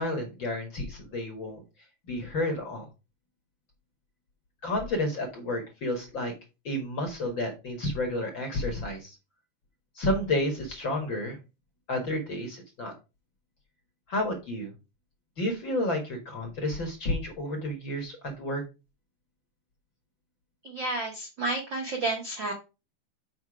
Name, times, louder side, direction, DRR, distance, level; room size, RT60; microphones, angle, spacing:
voice 1, 0.0-1.6 2.1-2.8 4.6-6.3 6.6-9.1 9.9-11.4 11.9-12.9 14.1-14.7 15.4-18.6, left 1 dB, 45° left, 2 dB, 1.6 m, -31 dB
voice 2, 20.6-22.5, right 2 dB, 70° right, 2 dB, 1.0 m, -31 dB
5.9 x 5.2 x 4.8 m, 0.28 s
omnidirectional pair, 4.1 m